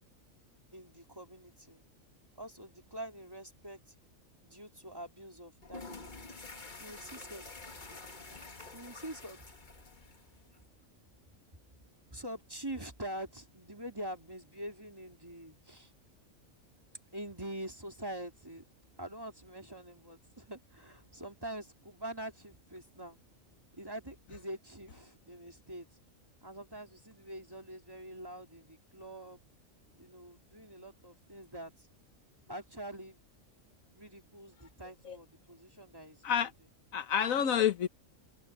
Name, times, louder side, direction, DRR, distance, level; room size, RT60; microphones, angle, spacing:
voice 1, 0.7-1.9 2.3-3.8 4.4-6.2 6.8-7.5 8.7-9.4 12.1-15.9 17.1-18.6 19.0-23.2 23.7-25.9 26.4-29.4 30.0-31.9 32.5-33.2 33.9-36.5, right 1 dB, 15° right, 3.1 m, -45 dB
sound 1, 5.6-10.6, left 3 dB, 35° left, 1.7 m, -48 dB
voice 2, 36.9-37.9, left 9 dB, 85° left, 1.4 m, -28 dB
open air
omnidirectional pair, 1.4 m